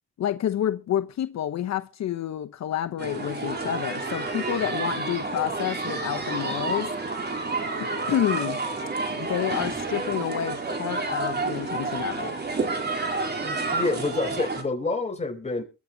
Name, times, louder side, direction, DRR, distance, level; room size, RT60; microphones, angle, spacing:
voice 1, 0.2-6.9 7.8-8.6 9.1-12.3, left 11 dB, 60° left, 1.0 m, -29 dB
sound 1, 3.0-14.6, right 3 dB, 35° right, 4.1 m, -29 dB
voice 2, 13.4-15.6, left 3 dB, 20° left, 4.3 m, -28 dB
22.0 x 8.4 x 4.0 m
cardioid pair, 90°, 30 cm